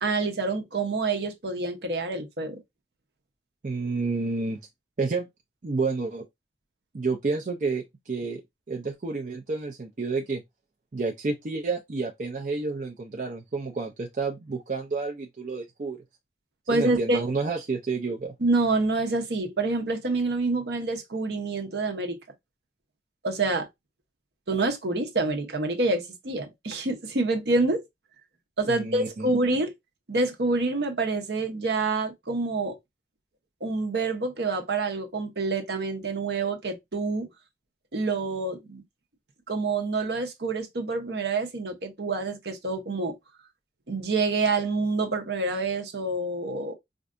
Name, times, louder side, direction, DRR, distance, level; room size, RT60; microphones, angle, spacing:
voice 1, 0.0-2.6 16.7-17.2 18.4-22.2 23.2-23.7 24.5-27.8 28.6-29.7 30.1-32.8 33.6-37.3 37.9-38.8 39.5-43.2 43.9-46.7, right 3 dB, 65° right, 0.8 m, -27 dB
voice 2, 3.6-4.6 5.0-5.3 5.6-6.3 6.9-8.4 8.7-10.4 10.9-16.0 16.7-18.3 28.7-29.3, right 3 dB, 45° right, 0.5 m, -30 dB
4.3 x 2.6 x 2.5 m
head